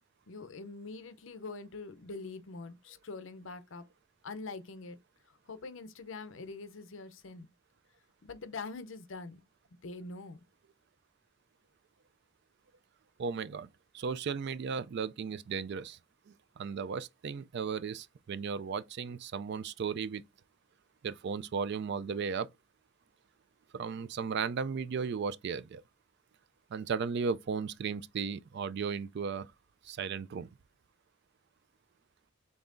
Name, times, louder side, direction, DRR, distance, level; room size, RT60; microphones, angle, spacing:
voice 1, 0.3-3.8 4.2-5.0 5.3-7.5 8.2-9.4 9.8-10.4, left 3 dB, 65° left, 0.6 m, -44 dB
voice 2, 13.2-13.7 13.9-16.0 16.3-20.2 21.0-22.5 23.7-25.8 26.7-29.5 29.8-30.5, right 5 dB, 55° right, 0.4 m, -35 dB
5.4 x 3.5 x 2.6 m
head